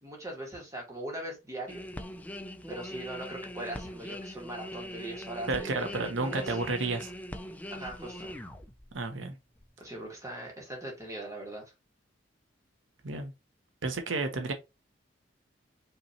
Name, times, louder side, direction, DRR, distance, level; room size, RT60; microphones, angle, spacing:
voice 1, 0.0-1.8 2.7-6.6 7.7-8.4 9.8-11.7, right 1 dB, 15° right, 1.7 m, -40 dB
sound 1, 1.7-9.1 9.6-9.7, equal, 10° left, 0.4 m, -42 dB
voice 2, 5.5-7.1 8.9-9.3 13.0-13.3 13.8-14.5, right 3 dB, 85° right, 0.9 m, -31 dB
5.4 x 3.0 x 2.8 m
head